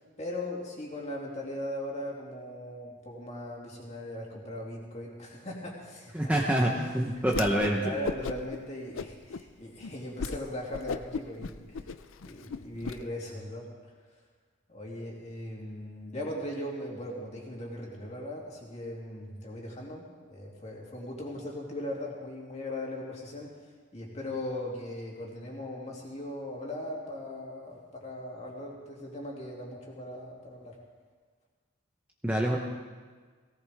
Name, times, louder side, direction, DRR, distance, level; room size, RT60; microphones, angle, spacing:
voice 1, 0.0-6.3 7.2-7.4 7.8-11.9 12.2-13.9 14.7-23.5 23.9-30.8, left 1 dB, 30° left, -3 dB, 2.8 m, -39 dB
voice 2, 6.1-7.8 32.2-32.6, right 1 dB, 5° right, -1 dB, 0.9 m, -26 dB
Whoosh swoosh swish, 7.3-7.8 8.0-8.6 8.9-9.4 9.8-9.9 10.2-10.4 10.7-12.9, left 4 dB, 70° left, 0.5 m, -35 dB
17.5 x 17.5 x 3.6 m, 1.5 s
head